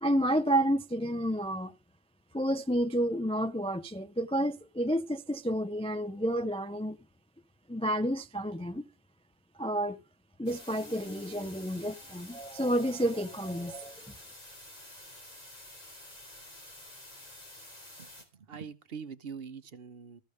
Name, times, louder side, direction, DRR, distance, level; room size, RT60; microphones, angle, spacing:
voice 1, 0.0-1.7 2.3-7.0 7.7-8.9 9.6-10.0 10.4-14.1, equal, 10° left, 0.3 m, -30 dB
sound 1, 10.5-18.2, left 1 dB, 35° left, 3.3 m, -50 dB
voice 2, 18.0-20.2, right 6 dB, 60° right, 1.1 m, -44 dB
14.0 x 5.1 x 6.5 m
omnidirectional pair, 1.1 m